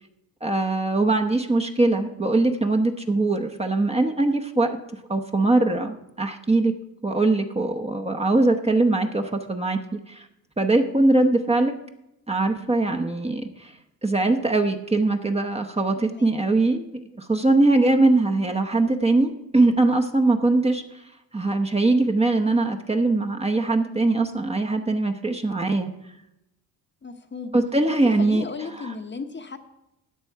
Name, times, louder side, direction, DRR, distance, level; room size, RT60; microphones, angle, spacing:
voice 1, 0.4-4.8 5.1-6.7 7.0-10.3 10.6-11.7 12.3-13.7 14.0-16.8 17.2-20.8 21.3-25.9 27.5-28.9, right 2 dB, 15° right, 3 dB, 0.9 m, -21 dB
voice 2, 16.0-16.3 27.0-27.5 28.2-29.6, left 4 dB, 30° left, 6 dB, 0.9 m, -35 dB
14.0 x 8.9 x 4.6 m, 0.87 s
cardioid pair, 95°, 39 cm